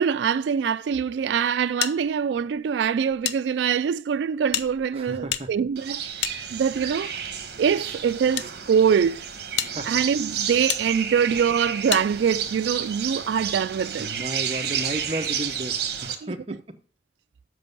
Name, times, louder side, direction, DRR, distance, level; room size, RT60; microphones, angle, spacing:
voice 1, 0.0-7.1 7.6-9.3 9.6-14.1 16.2-16.3, right 7 dB, 80° right, 0.3 m, -24 dB
sound 1, 1.8-3.4 3.7-3.8 4.5-7.0 7.8-8.5 9.1-9.2 9.6-9.7 10.7-10.8 11.9-12.1, left 10 dB, 70° left, 0.5 m, -31 dB
voice 2, 4.9-5.5 9.7-9.9 14.0-16.8, right 1 dB, 35° right, 0.9 m, -33 dB
sound 2, 5.8-16.2, right 8 dB, 60° right, 1.2 m, -31 dB
7.8 x 5.3 x 5.3 m
head